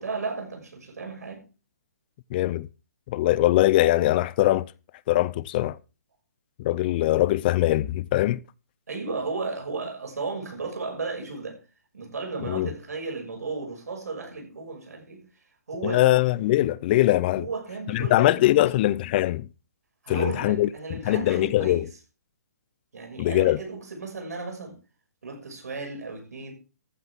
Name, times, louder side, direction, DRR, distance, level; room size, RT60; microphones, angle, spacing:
voice 1, 0.0-1.4 8.9-11.6 11.9-15.2 15.7-16.0 17.3-18.8 20.0-21.9 22.9-24.8 25.2-26.5, right 4 dB, 75° right, 6.1 m, -34 dB
voice 2, 2.3-2.7 3.1-4.7 5.1-5.8 6.6-8.4 12.5-12.7 15.8-17.5 17.9-19.5 20.1-21.9 23.2-23.6, left 16 dB, 35° left, 0.5 m, -22 dB
14.0 x 12.5 x 3.6 m
hypercardioid pair, 140°, 9 cm